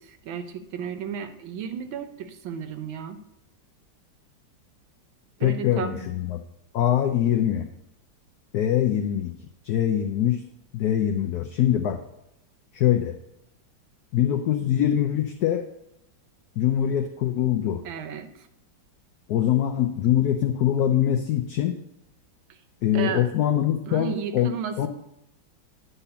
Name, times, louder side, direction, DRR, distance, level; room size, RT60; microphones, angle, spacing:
voice 1, 0.0-3.2 5.4-6.1 17.8-18.5 22.9-23.3 23.9-24.9, right 7 dB, 85° right, 8 dB, 1.6 m, -33 dB
voice 2, 5.4-6.4 6.7-7.7 8.5-9.3 9.6-10.4 10.7-12.0 12.7-13.2 14.1-15.6 16.6-17.8 19.3-21.8 22.8-24.5 24.8-24.9, left 11 dB, 70° left, 6 dB, 0.9 m, -23 dB
10.0 x 4.2 x 6.8 m, 0.85 s
omnidirectional pair, 2.1 m